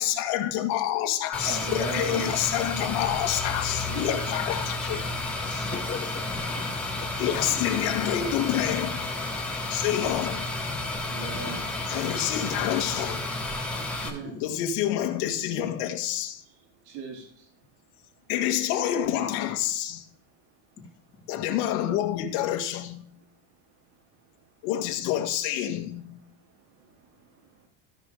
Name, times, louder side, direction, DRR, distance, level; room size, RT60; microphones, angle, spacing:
voice 1, 0.0-5.1 7.2-9.0 9.7-10.5 11.9-13.3 14.4-16.4 18.3-20.1 21.3-23.0 24.6-26.2, left 11 dB, 60° left, 1.8 m, -28 dB
sound 1, 1.3-14.1, left 2 dB, 5° left, 1.8 m, -31 dB
voice 2, 1.4-2.4 3.9-4.2 9.5-9.7 11.1-11.7 14.0-14.4 16.4-16.5 16.8-17.5 18.2-18.3 23.7-23.8 24.2-24.4 26.3-27.7, right 4 dB, 65° right, 4.0 m, -40 dB
voice 3, 5.5-7.6 8.0-8.1 9.8-10.0 11.2-11.6 13.8-13.9 14.2-14.4, left 5 dB, 20° left, 3.7 m, -40 dB
16.0 x 5.4 x 3.3 m
cardioid pair, 160°, 45 cm